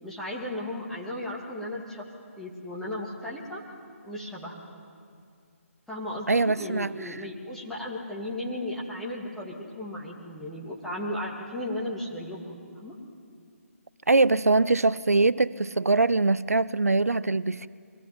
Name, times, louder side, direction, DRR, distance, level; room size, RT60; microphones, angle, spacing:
voice 1, 0.0-2.1 2.4-3.6 4.0-4.8 5.9-13.0, left 1 dB, 5° left, 2.6 m, -35 dB
voice 2, 6.3-7.2 14.1-17.7, right 3 dB, 85° right, 0.5 m, -23 dB
23.5 x 15.5 x 9.4 m
figure-of-eight pair, 145°, 8 cm